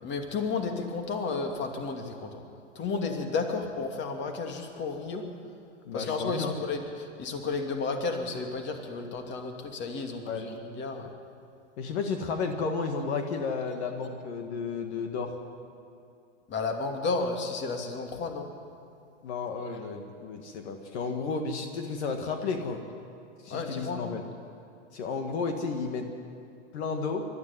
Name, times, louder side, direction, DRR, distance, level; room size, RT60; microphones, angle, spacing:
voice 1, 0.0-2.4 2.7-5.2 5.9-11.1 16.5-18.5 23.5-24.0, left 4 dB, 30° left, 4 dB, 2.5 m, -32 dB
voice 2, 5.9-6.5 10.3-10.5 11.8-15.4 19.2-22.8 23.4-24.2 24.9-26.1 26.7-27.3, left 4 dB, 60° left, 5 dB, 1.9 m, -32 dB
21.5 x 13.0 x 9.7 m, 2.4 s
hypercardioid pair, 120°, 37 cm